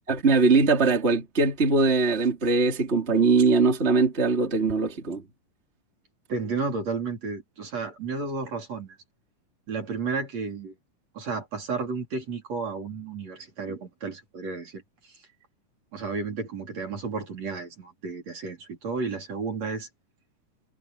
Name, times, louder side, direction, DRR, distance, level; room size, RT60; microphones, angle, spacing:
voice 1, 0.1-5.2, right 4 dB, 20° right, 3.0 m, -21 dB
voice 2, 6.3-9.0 9.7-10.7 11.1-14.8 15.9-19.9, right 4 dB, 50° right, 5.3 m, -32 dB
omnidirectional pair, 3.9 m